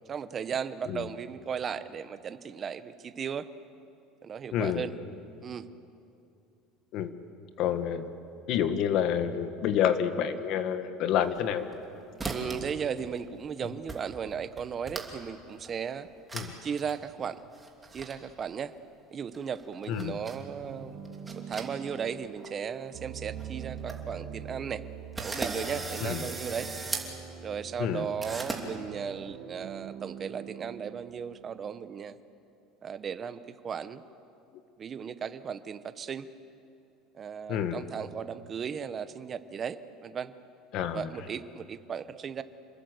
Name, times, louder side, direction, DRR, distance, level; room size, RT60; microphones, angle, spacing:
voice 1, 0.1-3.5 4.2-4.9 5.4-5.7 12.2-16.1 16.6-17.4 17.9-18.7 19.1-21.0 21.4-24.8 25.2-26.7 27.4-32.2 32.8-34.0 34.8-36.3 37.1-40.3 40.9-42.4, right 7 dB, 30° right, 12 dB, 0.9 m, -36 dB
voice 2, 4.5-4.8 6.9-7.1 7.6-8.1 8.5-11.7 16.3-16.5 19.9-20.2 26.0-26.2 27.8-28.0 37.5-37.8 40.7-41.1, left 9 dB, 55° left, 10 dB, 1.5 m, -28 dB
sound 1, 11.3-11.9 12.2-12.7 13.0-13.5 13.9-14.0 14.3-15.3 15.6-15.8 16.3-16.5 16.8-16.9 17.5-18.1 19.3-20.4 21.0-22.1 22.4-22.5 23.0-23.1 23.4-23.5 23.7-24.0 24.5-24.6 25.2-27.1 28.2-28.6, right 3 dB, 10° right, 2.7 m, -37 dB
sound 2, 20.3-32.0, right 8 dB, 55° right, 2.7 m, -44 dB
27.5 x 20.5 x 7.9 m, 2.7 s
cardioid pair, 145°, 0 cm